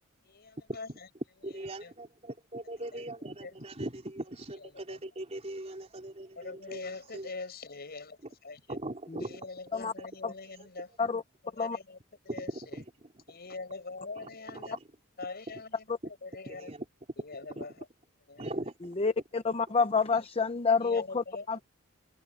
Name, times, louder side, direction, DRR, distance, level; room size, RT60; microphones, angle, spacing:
voice 1, 0.2-0.9 1.8-1.9 2.9-3.0 3.4-3.5 4.6-5.0 6.4-8.6 9.2-10.9 11.4-12.0 12.2-12.8 13.3-14.8 15.2-16.7 17.2-17.9 18.3-18.5 20.0-20.3 20.8-21.6, left 3 dB, 50° left, 5.5 m, -43 dB
voice 2, 1.4-7.3 8.7-9.4 10.0-10.1 12.3-12.8 14.2-14.9 16.5-16.9 17.6-17.7 18.4-18.7, right 1 dB, 30° right, 4.1 m, -40 dB
voice 3, 19.0-21.6, left 4 dB, 30° left, 0.7 m, -28 dB
open air
head